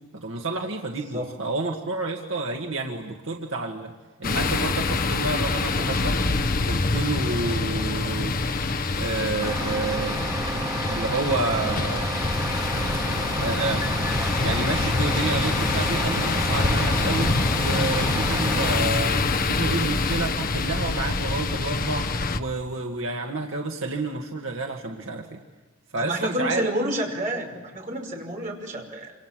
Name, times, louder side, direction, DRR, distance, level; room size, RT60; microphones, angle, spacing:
voice 1, 0.1-3.9 4.2-6.2 6.6-8.4 9.0-10.2 10.9-12.4 13.4-13.9 14.4-17.3 17.6-22.1 22.3-25.4 25.9-26.7, right 3 dB, 70° right, 1 dB, 1.9 m, -29 dB
sound 1, 4.2-22.4, left 3 dB, 45° left, 1.1 m, -25 dB
Truck, 9.4-18.8, right 1 dB, 15° right, 2.4 m, -31 dB
voice 2, 26.0-29.1, right 1 dB, 40° right, 1 dB, 5.7 m, -29 dB
27.5 x 27.5 x 7.7 m, 1.3 s
head